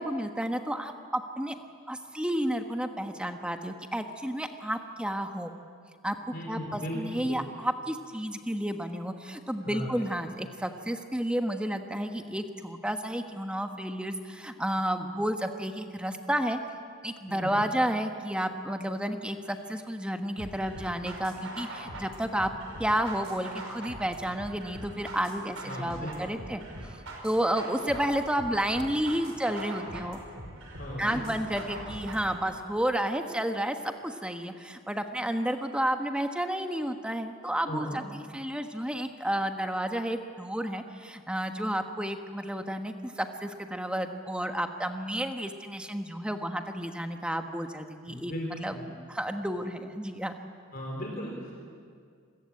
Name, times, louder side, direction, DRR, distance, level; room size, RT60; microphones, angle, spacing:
voice 1, 0.0-1.6 1.9-5.5 6.0-6.2 6.5-16.6 17.0-22.5 22.8-26.6 27.2-30.2 31.0-38.0 38.3-48.3 48.6-48.8 49.1-50.3, right 1 dB, 5° right, 6 dB, 1.3 m, -31 dB
voice 2, 6.3-7.4 9.6-10.1 17.3-17.6 25.7-26.5 30.8-31.2 37.7-38.0 48.1-48.9 50.7-51.5, equal, 45° left, -1 dB, 4.0 m, -37 dB
sound 1, 20.4-32.4, right 1 dB, 75° right, 5.3 m, -42 dB
27.0 x 22.0 x 8.6 m, 2.2 s
head